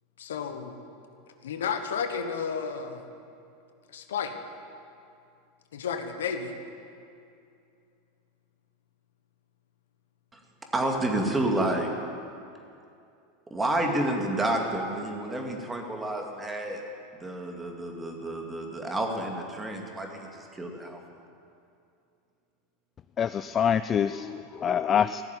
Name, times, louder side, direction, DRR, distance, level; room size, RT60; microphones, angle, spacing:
voice 1, 0.2-0.7 1.4-3.0 3.9-4.3 5.7-6.5, left 6 dB, 85° left, 7 dB, 1.2 m, -32 dB
voice 2, 10.7-11.9 13.5-16.8 17.1-21.0, right 1 dB, 15° right, 2 dB, 2.3 m, -29 dB
voice 3, 23.2-25.2, left 8 dB, 30° left, 13 dB, 0.3 m, -25 dB
15.5 x 7.1 x 9.9 m, 2.5 s
hypercardioid pair, 105°, 0 cm